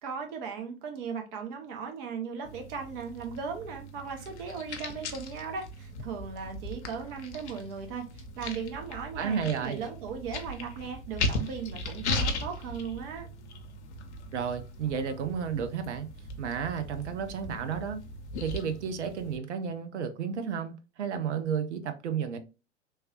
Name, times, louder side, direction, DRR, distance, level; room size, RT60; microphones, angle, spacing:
voice 1, 0.0-13.3, right 6 dB, 50° right, 0.9 m, -37 dB
sound 1, 2.4-19.4, left 2 dB, 70° left, 0.6 m, -38 dB
voice 2, 9.2-9.8 14.3-16.1 16.4-18.0 18.4-22.4, right 7 dB, 75° right, 0.5 m, -32 dB
3.2 x 2.3 x 2.7 m
figure-of-eight pair, 85°, 35 cm